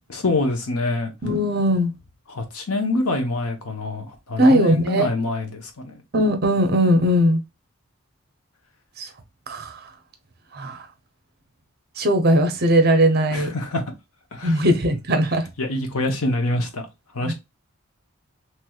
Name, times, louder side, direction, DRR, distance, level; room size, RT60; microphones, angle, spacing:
voice 1, 0.1-1.1 2.3-6.0 13.3-13.8 14.3-14.6 15.6-16.8 17.1-17.3, left 2 dB, 85° left, 0.9 m, -25 dB
voice 2, 1.2-1.9 4.4-5.1 6.1-7.4 9.0-9.1 9.5-9.8 10.5-10.8 12.0-13.5 14.4-15.4 17.2-17.3, equal, 45° right, 0.7 m, -19 dB
3.1 x 3.0 x 2.3 m
head